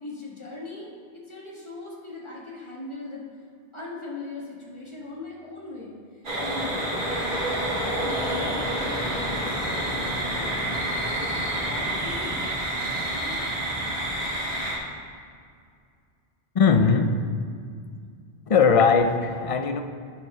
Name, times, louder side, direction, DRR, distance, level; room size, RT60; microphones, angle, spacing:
voice 1, 0.0-3.3 3.7-6.0 6.4-7.3 7.8-9.9 10.3-12.5 13.0-13.4, left 2 dB, 25° left, -4 dB, 1.7 m, -40 dB
sound 1, 6.2-14.8, right 1 dB, 80° right, 2.2 m, -28 dB
voice 2, 16.5-17.1 18.5-19.8, left 5 dB, 50° left, 7 dB, 0.4 m, -19 dB
10.5 x 4.6 x 5.5 m, 2.2 s
omnidirectional pair, 1.2 m